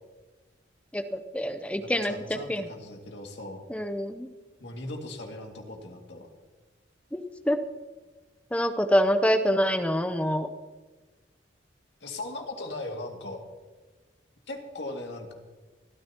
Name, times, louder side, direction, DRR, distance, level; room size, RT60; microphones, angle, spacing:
voice 1, 0.9-2.7 3.7-4.3 7.1-7.6 8.5-10.5, equal, 5° left, 8 dB, 0.6 m, -26 dB
voice 2, 1.8-3.6 4.6-6.3 12.0-13.4 14.5-15.3, left 2 dB, 70° left, 2 dB, 2.3 m, -38 dB
25.5 x 13.5 x 2.9 m, 1.3 s
head